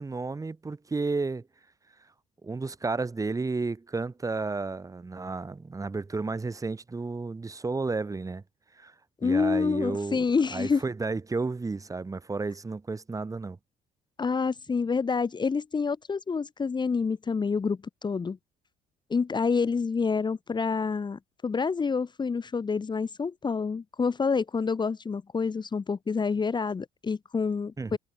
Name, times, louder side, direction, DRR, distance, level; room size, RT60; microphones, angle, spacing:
voice 1, 0.0-1.5 2.4-8.4 8.7-8.9 9.2-10.2 10.5-13.6 27.8-28.0, right 3 dB, 20° right, 2.9 m, -32 dB
voice 2, 9.2-10.8 14.2-18.4 19.1-28.0, left 5 dB, 25° left, 1.6 m, -28 dB
cardioid pair, 110°, 17 cm